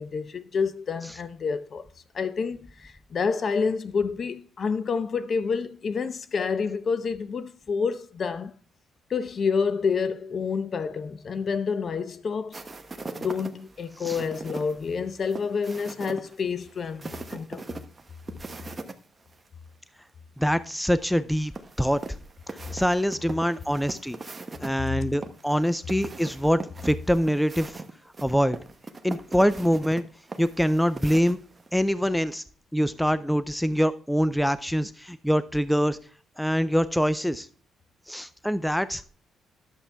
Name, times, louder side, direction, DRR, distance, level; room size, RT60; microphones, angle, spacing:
voice 1, 0.0-1.8 2.1-8.5 9.1-12.6 13.2-17.6, left 5 dB, 45° left, 0.7 m, -28 dB
sound 1, 12.5-18.9 19.3-19.4 21.5-24.7 25.2-31.7, right 3 dB, 25° right, 1.0 m, -40 dB
voice 2, 20.4-21.5 21.8-22.0 22.5-24.2 24.6-27.8 28.2-28.6 29.0-30.0 30.4-31.4 31.7-32.4 32.7-36.0 36.4-37.5 38.1-39.1, equal, ahead, 0.4 m, -24 dB
11.0 x 7.1 x 3.4 m
cardioid pair, 90°, 0 cm